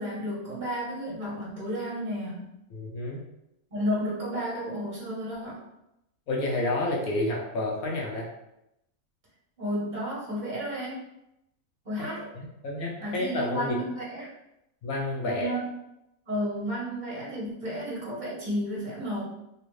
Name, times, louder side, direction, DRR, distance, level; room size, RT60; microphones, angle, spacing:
voice 1, 0.0-2.5 3.7-5.6 9.6-11.0 11.8-12.2 13.0-14.3 15.2-15.6 16.3-19.2, equal, 35° right, -7 dB, 1.4 m, -32 dB
voice 2, 2.7-3.2 6.3-8.3 12.2-13.8 14.8-15.5, left 2 dB, 90° left, -2 dB, 1.3 m, -30 dB
3.3 x 2.6 x 3.1 m, 0.85 s
omnidirectional pair, 1.5 m